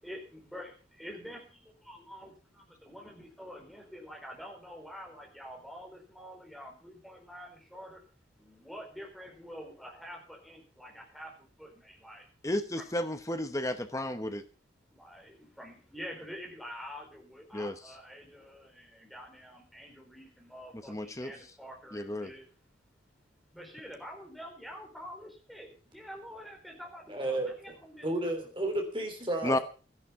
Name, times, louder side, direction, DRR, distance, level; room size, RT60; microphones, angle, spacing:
voice 1, 0.0-0.7 1.0-8.0 8.4-12.2 12.8-12.9 14.9-22.4 23.5-28.1, equal, ahead, 0 dB, 4.5 m, -47 dB
voice 2, 12.4-14.4 17.5-17.7 20.9-21.3 21.9-22.3 29.4-29.6, left 1 dB, 15° left, 10 dB, 0.9 m, -32 dB
voice 3, 27.1-27.5 28.0-29.6, right 1 dB, 25° right, 4 dB, 3.3 m, -32 dB
13.0 x 11.0 x 5.7 m, 0.37 s
head